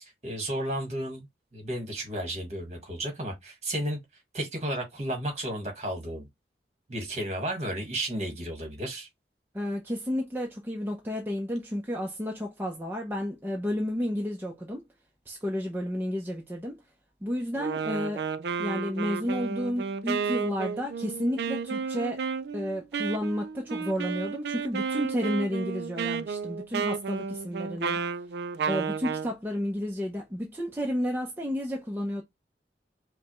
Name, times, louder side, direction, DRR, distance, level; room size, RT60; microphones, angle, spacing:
voice 1, 0.2-1.3 1.5-4.0 4.3-6.3 6.9-9.1, right 1 dB, 40° right, 1.5 m, -33 dB
voice 2, 9.5-14.8 15.3-16.8 17.2-18.2 18.6-22.2 22.5-28.0 28.7-32.2, equal, 10° right, 0.6 m, -31 dB
Wind instrument woodwind instrument, 17.6-29.3, right 5 dB, 70° right, 0.4 m, -32 dB
5.4 x 2.1 x 3.0 m
head